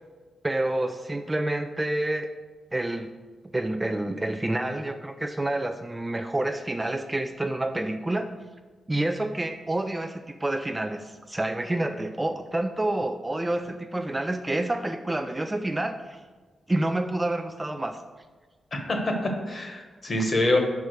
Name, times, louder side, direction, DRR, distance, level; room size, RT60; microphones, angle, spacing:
voice 1, 0.4-2.3 2.7-3.1 3.5-8.3 8.9-16.2 16.7-18.0, right 1 dB, 15° right, 6 dB, 0.3 m, -28 dB
voice 2, 18.9-20.6, left 1 dB, 40° left, 3 dB, 1.2 m, -25 dB
5.5 x 4.7 x 6.3 m, 1.4 s
wide cardioid pair, 115°, 0 cm